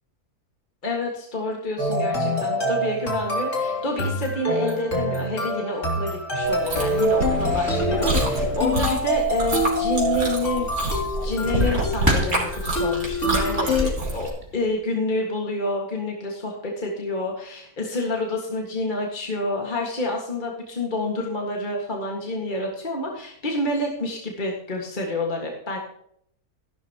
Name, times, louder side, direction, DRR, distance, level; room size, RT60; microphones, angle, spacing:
voice 1, 0.8-10.9 11.2-25.8, left 2 dB, 30° left, -1 dB, 2.0 m, -28 dB
sound 1, 1.8-13.9, equal, 55° left, 3.1 m, -26 dB
Chewing mastication, 6.4-14.3, right 1 dB, 70° right, 3.8 m, -27 dB
sound 2, 9.4-14.7, right 1 dB, 15° right, 3.0 m, -32 dB
14.5 x 12.0 x 2.9 m, 0.69 s
omnidirectional pair, 1.6 m